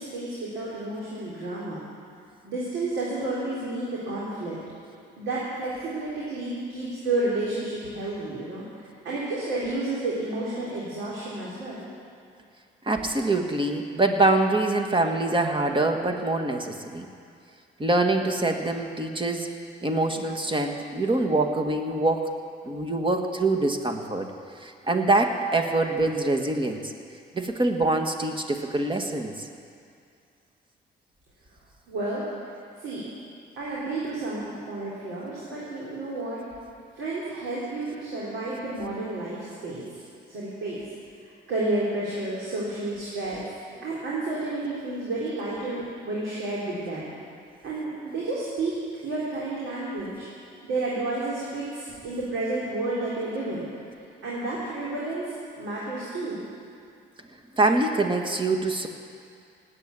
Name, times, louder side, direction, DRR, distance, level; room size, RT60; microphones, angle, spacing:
voice 1, 0.0-1.8 2.4-4.6 5.2-8.6 9.0-11.9 31.9-32.2 32.8-33.1 33.6-36.4 37.0-40.0 40.3-40.8 41.5-43.5 43.8-47.1 47.6-48.8 49.0-50.3 50.6-53.7 54.2-56.4, right 2 dB, 80° right, -7 dB, 3.9 m, -31 dB
voice 2, 12.8-17.1 17.8-19.5 19.8-22.3 22.6-24.3 24.6-26.9 27.3-29.5 57.5-58.9, right 2 dB, 25° right, 4 dB, 1.8 m, -24 dB
18.0 x 9.1 x 8.4 m, 2.4 s
cardioid pair, 90°, 20 cm